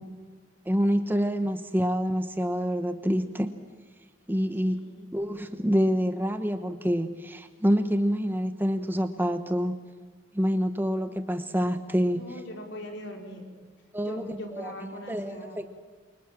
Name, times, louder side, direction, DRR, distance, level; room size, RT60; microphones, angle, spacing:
voice 1, 0.7-3.5 4.3-4.8 5.1-9.8 10.3-12.3 13.9-14.7 15.1-15.8, equal, 10° right, 8 dB, 1.0 m, -27 dB
voice 2, 4.7-5.1 12.2-13.4 14.1-15.6, equal, 65° left, 2 dB, 5.1 m, -40 dB
29.0 x 24.5 x 7.4 m, 1.4 s
head